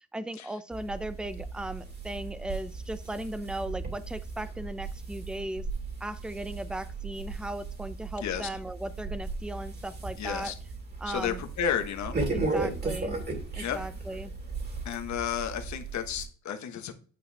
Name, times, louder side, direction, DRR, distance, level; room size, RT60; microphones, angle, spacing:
voice 1, 0.0-5.7 6.0-10.5 11.0-11.4 12.3-13.1 13.6-14.3, right 1 dB, 5° right, 13 dB, 0.6 m, -37 dB
sound 1, 0.7-16.2, right 3 dB, 35° right, 2.5 m, -36 dB
voice 2, 10.2-10.5 11.1-12.2 13.6-13.8 14.8-16.9, left 8 dB, 65° left, 7 dB, 1.3 m, -32 dB
9.4 x 4.7 x 3.4 m, 0.43 s
cardioid pair, 90°, 30 cm